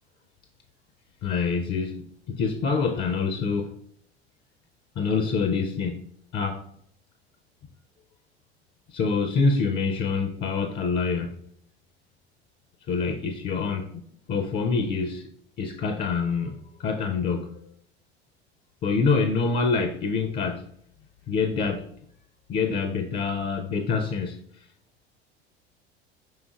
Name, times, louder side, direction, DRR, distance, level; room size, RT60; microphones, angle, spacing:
voice 1, 1.2-3.7 5.0-6.0 6.3-6.6 8.9-11.4 12.9-13.9 14.3-15.3 15.6-17.5 18.8-20.6 21.3-21.9 22.5-24.4, left 4 dB, 30° left, 0.4 m, -26 dB
4.9 x 4.6 x 2.3 m
figure-of-eight pair, 70°, 32 cm